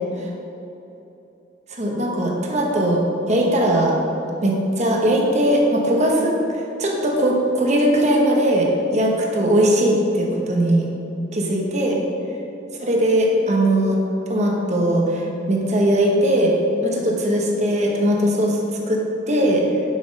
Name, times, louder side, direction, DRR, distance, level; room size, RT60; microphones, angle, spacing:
voice 1, 1.7-3.0 3.3-3.9 4.4-10.9 11.3-12.0 12.8-14.0 14.3-16.6 16.8-18.6 18.9-19.6, right 1 dB, 35° right, -1 dB, 1.1 m, -19 dB
7.5 x 6.0 x 5.3 m, 2.9 s
head